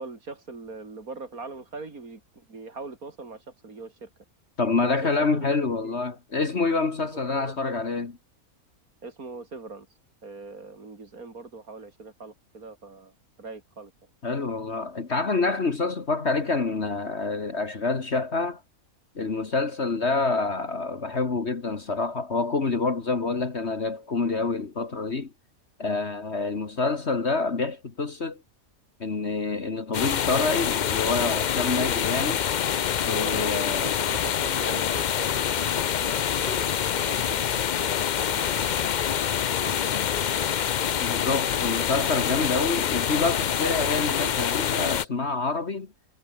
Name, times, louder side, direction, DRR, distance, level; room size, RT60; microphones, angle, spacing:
voice 1, 0.0-4.1 4.8-5.5 5.8-5.9 7.1-7.8 9.0-9.9 10.2-13.9 33.0-39.1 39.6-40.5, right 3 dB, 80° right, 3.8 m, -41 dB
voice 2, 4.6-8.1 14.2-18.6 19.2-25.3 25.8-28.4 29.0-32.5 33.1-33.9 36.4-36.7 41.0-45.9, left 3 dB, 50° left, 2.1 m, -27 dB
sound 1, 29.9-45.0, left 9 dB, 70° left, 0.4 m, -26 dB
omnidirectional pair, 1.5 m